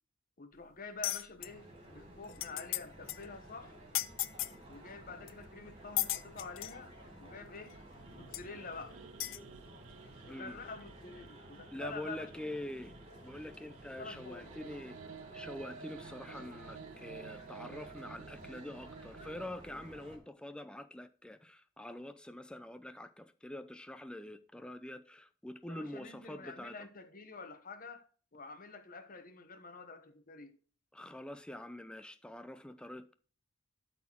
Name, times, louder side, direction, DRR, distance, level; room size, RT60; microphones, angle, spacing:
voice 1, 0.4-3.8 4.7-7.8 8.1-9.0 10.3-12.5 14.0-14.5 25.7-28.0 28.3-30.5, left 4 dB, 45° left, 1.1 m, -48 dB
sound 1, 1.0-1.5 2.0-2.1 2.3-2.8 3.1-3.2 3.9-4.6 5.3-5.4 6.0-6.8 7.7-7.8 8.3-8.4 9.2-9.4, left 15 dB, 75° left, 0.5 m, -35 dB
sound 2, 1.4-20.2, right 1 dB, 30° right, 3.4 m, -53 dB
sound 3, 7.6-19.5, right 7 dB, 80° right, 0.4 m, -53 dB
voice 2, 10.3-10.6 11.7-12.9 13.2-15.0 15.3-26.8 30.9-33.1, left 1 dB, 5° left, 0.5 m, -45 dB
12.0 x 4.3 x 4.5 m
head